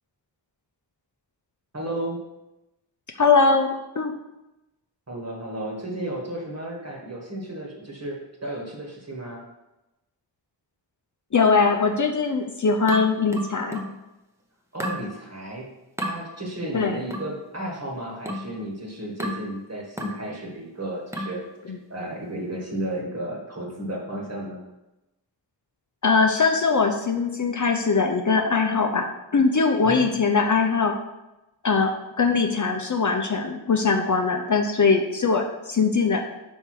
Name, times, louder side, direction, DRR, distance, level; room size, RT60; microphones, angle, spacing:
voice 1, 1.7-2.2 5.1-9.4 14.7-15.7 16.0-21.4 21.9-24.6 29.8-30.0, right 1 dB, 35° right, -2 dB, 1.5 m, -33 dB
voice 2, 3.2-4.1 11.3-13.8 16.7-17.0 21.7-21.8 26.0-30.9 31.6-36.2, left 4 dB, 45° left, 3 dB, 0.6 m, -21 dB
sound 1, 12.9-14.0 14.8-15.1 16.0-16.2 17.1-17.4 18.3-18.5 19.2-19.5 20.0-20.2 21.1-21.4, equal, 5° right, 0.8 m, -32 dB
5.2 x 4.4 x 4.7 m, 0.97 s
wide cardioid pair, 90°, 44 cm